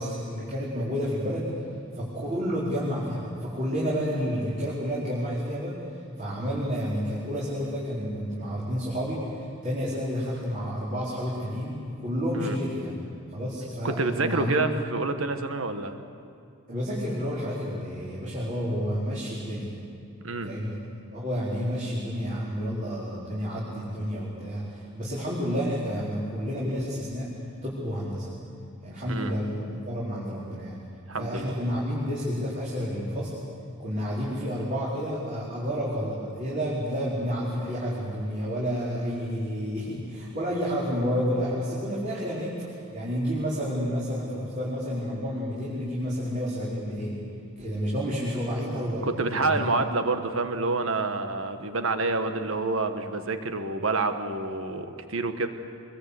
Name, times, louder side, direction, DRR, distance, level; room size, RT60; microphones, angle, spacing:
voice 1, 0.0-1.6 1.9-5.8 6.2-12.9 13.3-14.7 16.7-19.7 20.4-27.3 27.6-28.3 28.8-30.8 31.1-33.3 33.8-47.2 47.6-49.7, equal, 40° right, -7 dB, 4.5 m, -30 dB
voice 2, 13.8-16.0 20.2-20.5 29.1-29.3 31.1-31.5 49.0-55.5, right 3 dB, 80° right, 8 dB, 1.4 m, -28 dB
25.5 x 22.0 x 8.3 m, 2.4 s
head